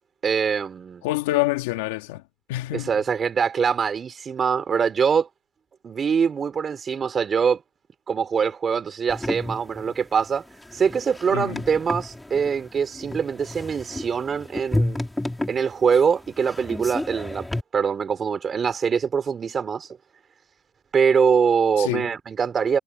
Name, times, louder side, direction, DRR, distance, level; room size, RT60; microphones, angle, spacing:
voice 1, 0.2-1.0 2.7-5.3 5.8-7.6 8.1-10.5 10.7-15.0 15.5-17.5 17.7-20.0 20.9-22.8, right 6 dB, 30° right, 4.3 m, -23 dB
voice 2, 1.0-2.2 2.5-2.9 11.3-11.6 21.8-22.1, left 18 dB, 85° left, 3.2 m, -26 dB
sound 1, 9.1-17.6, left 1 dB, 5° left, 5.2 m, -31 dB
supercardioid pair, 120°, 0 cm